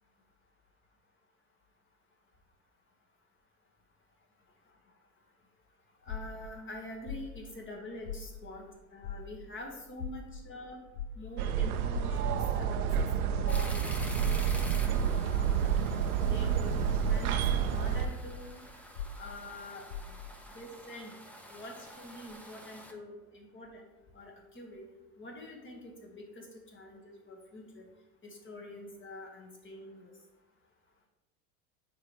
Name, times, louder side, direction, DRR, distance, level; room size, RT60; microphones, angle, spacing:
voice 1, 6.0-8.7 8.9-10.8 11.2-14.5 14.9-15.6 16.3-16.7 17.1-18.6 19.2-20.2 20.5-21.2 21.5-23.9 24.1-24.8 25.2-26.5 26.7-27.9 28.2-30.1, left 1 dB, 25° left, 1 dB, 1.7 m, -46 dB
sound 1, 6.1-8.7 9.0-16.5 16.9-20.4, left 6 dB, 90° left, 0.5 m, -43 dB
sound 2, 11.4-18.1, right 8 dB, 80° right, 0.7 m, -29 dB
sound 3, 13.5-22.9, equal, 5° left, 0.9 m, -48 dB
9.3 x 4.2 x 3.2 m, 1.0 s
hypercardioid pair, 80°, 43 cm